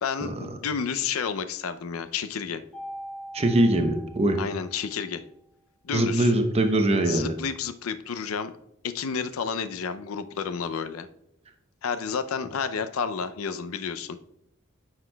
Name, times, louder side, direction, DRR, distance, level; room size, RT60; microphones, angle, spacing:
voice 1, 0.0-2.6 4.4-5.2 5.8-6.3 7.0-8.5 8.8-11.1 11.8-14.2, left 6 dB, 90° left, 12 dB, 0.5 m, -31 dB
Mallet percussion, 2.7-5.0, equal, ahead, 2.1 m, -42 dB
voice 2, 3.3-4.4 5.9-7.3, right 1 dB, 30° right, 6 dB, 0.7 m, -22 dB
9.5 x 5.9 x 2.2 m, 0.77 s
head